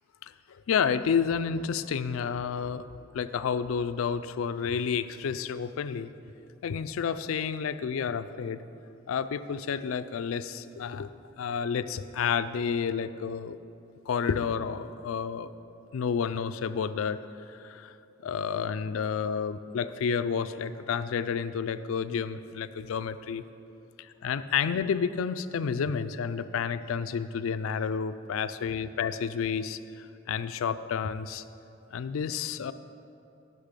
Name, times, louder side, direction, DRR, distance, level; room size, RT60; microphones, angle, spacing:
voice 1, 0.2-2.9 3.1-6.1 6.6-8.6 9.1-11.1 11.4-13.6 14.1-17.2 17.5-17.9 18.2-23.4 24.2-31.4 31.9-32.7, left 6 dB, 75° left, 13 dB, 0.4 m, -30 dB
9.9 x 6.5 x 5.1 m, 2.7 s
head